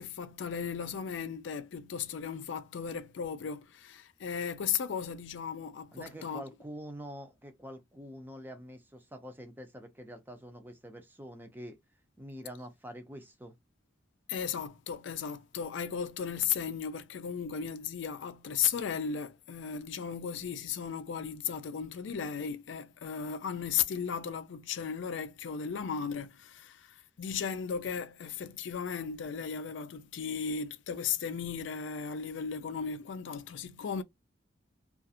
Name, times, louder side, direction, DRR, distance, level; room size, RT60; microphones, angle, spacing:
voice 1, 0.0-6.4 14.3-34.0, left 7 dB, 75° left, 0.4 m, -35 dB
voice 2, 5.9-11.8 12.2-13.5, equal, 10° right, 0.5 m, -46 dB
2.4 x 2.4 x 2.7 m
head